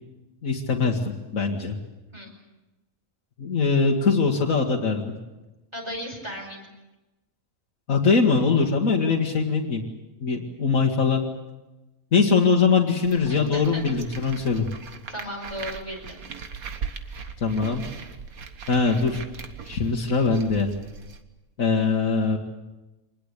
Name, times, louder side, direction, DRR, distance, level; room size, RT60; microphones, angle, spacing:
voice 1, 0.4-1.0 1.3-1.8 3.4-5.1 7.9-9.8 10.2-11.2 12.1-14.7 17.4-17.8 18.7-19.2 19.6-20.7 21.6-22.4, left 4 dB, 70° left, -1 dB, 2.1 m, -22 dB
voice 2, 5.7-6.6 12.9-13.0 13.3-13.8 15.1-16.2 17.2-17.4, equal, 20° right, 1 dB, 5.6 m, -36 dB
sound 1, 13.0-21.2, right 6 dB, 85° right, 1.8 m, -39 dB
25.0 x 20.5 x 8.3 m, 1.1 s
omnidirectional pair, 1.5 m